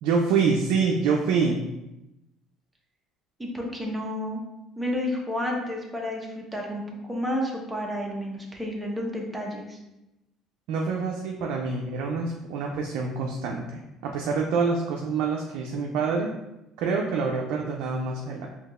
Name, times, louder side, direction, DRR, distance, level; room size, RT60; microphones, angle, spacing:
voice 1, 0.0-1.6 10.7-16.3 16.8-18.5, right 5 dB, 75° right, 0 dB, 0.4 m, -26 dB
voice 2, 3.4-4.4 4.8-9.8, left 1 dB, 5° right, -2 dB, 0.8 m, -31 dB
4.4 x 2.8 x 2.4 m, 0.93 s
supercardioid pair, 90°, 0 cm